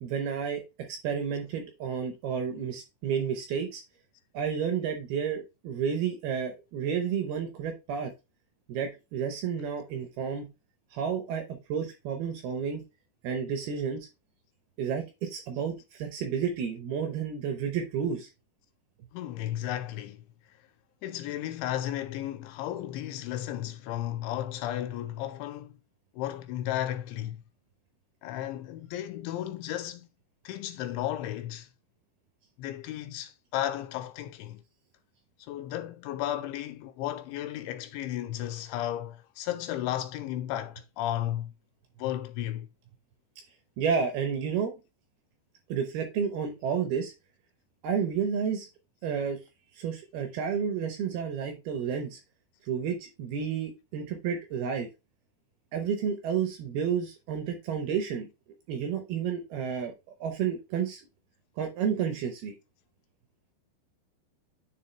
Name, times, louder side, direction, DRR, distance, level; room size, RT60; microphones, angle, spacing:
voice 1, 0.0-3.8 4.3-8.1 8.7-10.5 10.9-12.8 13.2-14.1 14.8-18.3 43.8-44.7 45.7-47.1 47.8-48.7 49.0-49.4 49.7-52.2 52.6-54.9 55.7-58.3 58.7-59.9 60.2-61.0 61.6-62.5, right 7 dB, 75° right, 2.4 m, -31 dB
voice 2, 19.1-20.2 21.0-25.8 26.1-27.4 28.2-30.1 30.4-31.7 32.6-34.6 35.5-41.5 42.0-42.7, left 12 dB, 85° left, 3.0 m, -34 dB
9.9 x 3.6 x 3.2 m
omnidirectional pair, 5.3 m